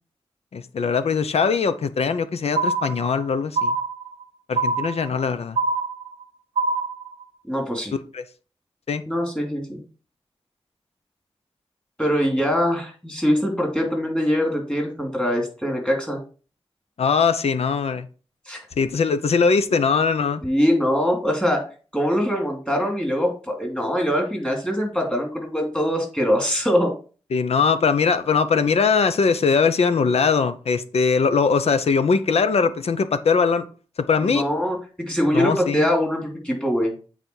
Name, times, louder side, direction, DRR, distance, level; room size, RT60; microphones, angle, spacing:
voice 1, 0.5-3.8 4.5-5.6 8.1-8.2 8.9-9.0 17.0-18.1 18.8-20.4 27.3-33.6 34.0-34.5 35.3-35.9, left 5 dB, 90° left, 11 dB, 0.7 m, -21 dB
sound 1, 2.6-3.2 3.6-4.2 4.6-5.2 5.6-6.2 6.6-7.2, right 3 dB, 90° right, 0.5 m, -24 dB
voice 2, 7.5-7.9 9.1-9.8 12.0-16.2 18.5-18.6 20.4-21.6 21.9-26.9 34.2-36.9, equal, 10° left, 1 dB, 2.6 m, -23 dB
8.2 x 4.1 x 4.5 m, 0.38 s
wide cardioid pair, 95°, 10 cm